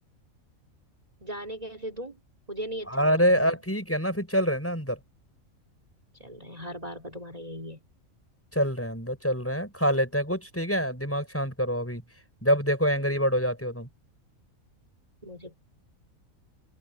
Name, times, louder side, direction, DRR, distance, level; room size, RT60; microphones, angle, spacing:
voice 1, 1.2-2.2 2.5-3.6 6.2-7.8 15.2-15.6, equal, 25° right, 3.6 m, -38 dB
voice 2, 2.9-5.0 8.5-12.0 12.4-13.9, equal, 10° left, 6.0 m, -26 dB
omnidirectional pair, 1.5 m